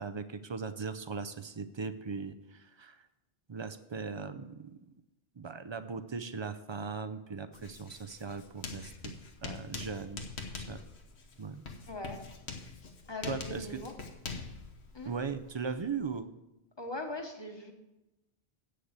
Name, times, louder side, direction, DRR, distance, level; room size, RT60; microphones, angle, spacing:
voice 1, 0.0-3.0 3.5-4.8 5.4-9.1 9.4-10.2 10.5-10.8 11.4-11.6 13.3-13.8 15.0-16.3, right 5 dB, 40° right, 10 dB, 0.4 m, -38 dB
Writing, 7.5-16.2, left 4 dB, 80° left, 1.4 m, -44 dB
voice 2, 11.9-12.2 13.1-13.9 14.9-15.1 16.8-17.7, left 2 dB, 25° left, 3 dB, 1.1 m, -40 dB
8.1 x 6.5 x 8.0 m, 0.95 s
omnidirectional pair, 1.1 m